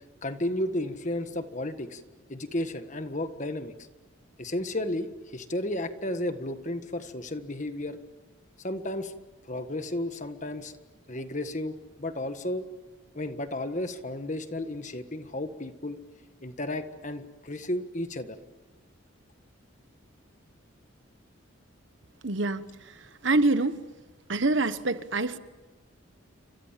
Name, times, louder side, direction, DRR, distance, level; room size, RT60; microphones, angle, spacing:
voice 1, 0.2-2.0 2.3-3.7 4.4-8.0 8.6-9.1 9.5-10.8 11.1-12.6 13.1-16.0 16.4-18.4, left 1 dB, 35° left, 9 dB, 1.5 m, -33 dB
voice 2, 22.2-22.6 23.2-23.8 24.3-25.4, right 2 dB, 65° right, 12 dB, 1.3 m, -25 dB
29.5 x 25.5 x 7.5 m, 1.2 s
head